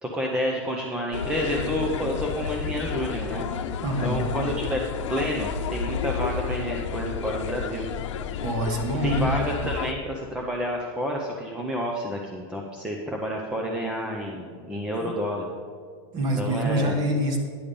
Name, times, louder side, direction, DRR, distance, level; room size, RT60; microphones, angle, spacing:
voice 1, 0.0-3.5 4.0-4.8 5.1-7.9 9.0-15.5 16.4-17.0, equal, 5° right, 0 dB, 0.5 m, -29 dB
sound 1, 1.1-9.9, left 7 dB, 80° left, 0.8 m, -31 dB
voice 2, 3.8-4.2 8.4-9.3 14.9-15.1 16.1-17.4, equal, 25° right, 4 dB, 1.2 m, -26 dB
10.0 x 6.9 x 5.2 m, 2.1 s
supercardioid pair, 170°, 15 cm